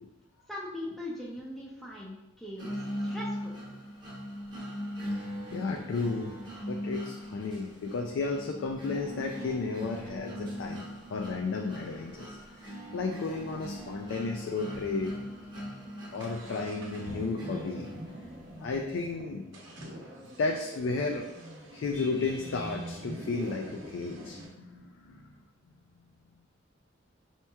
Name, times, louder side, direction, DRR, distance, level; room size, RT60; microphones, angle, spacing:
voice 1, 0.5-3.6, left 1 dB, ahead, -6 dB, 0.4 m, -40 dB
sound 1, 2.6-18.6, equal, 25° right, 0.7 m, -40 dB
sound 2, 5.1-5.2 5.7-8.3 8.9-9.0 9.4-9.5 9.9-13.6 13.9-14.0 14.2-14.3 14.9-15.0 15.3-24.5, equal, 70° right, 0.8 m, -46 dB
voice 2, 5.5-6.3 6.7-15.2 16.1-17.9 18.6-19.5 20.2-21.3 21.7-25.3, left 3 dB, 75° left, 2 dB, 0.3 m, -33 dB
5.4 x 2.9 x 2.2 m, 0.96 s
head